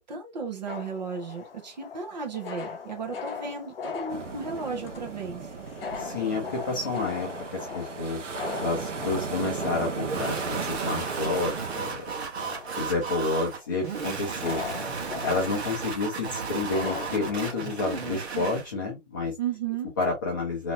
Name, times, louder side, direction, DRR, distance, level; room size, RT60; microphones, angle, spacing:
voice 1, 0.0-5.5 19.4-19.9, right 5 dB, 35° right, 1.1 m, -34 dB
sound 1, 0.7-18.2, left 6 dB, 50° left, 0.8 m, -40 dB
sound 2, 4.1-11.9, right 5 dB, 75° right, 1.0 m, -36 dB
voice 2, 6.0-8.2 8.6-12.1 12.7-14.6 15.2-19.3 20.0-20.7, left 3 dB, 15° left, 0.7 m, -29 dB
sound 3, 10.0-18.7, right 5 dB, 60° right, 1.3 m, -34 dB
3.6 x 3.0 x 2.5 m
hypercardioid pair, 165°, 37 cm